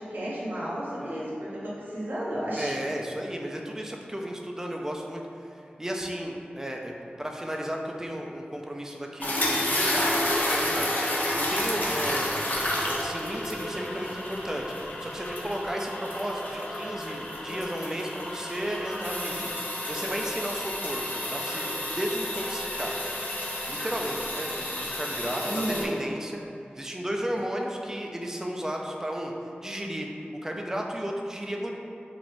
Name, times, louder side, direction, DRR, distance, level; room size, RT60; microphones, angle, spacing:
voice 1, 0.0-2.7 11.8-11.9 25.4-25.9, equal, 70° right, -8 dB, 0.8 m, -32 dB
voice 2, 2.6-5.2 5.6-6.9 7.2-12.3 12.6-14.7 15.0-23.0 23.7-26.4 26.8-29.3 29.6-30.1 30.4-31.7, equal, 15° right, 0 dB, 0.3 m, -34 dB
sound 1, 9.2-25.9, left 1 dB, 60° left, 0.5 m, -30 dB
3.1 x 2.9 x 2.6 m, 2.6 s
wide cardioid pair, 65°, 3 cm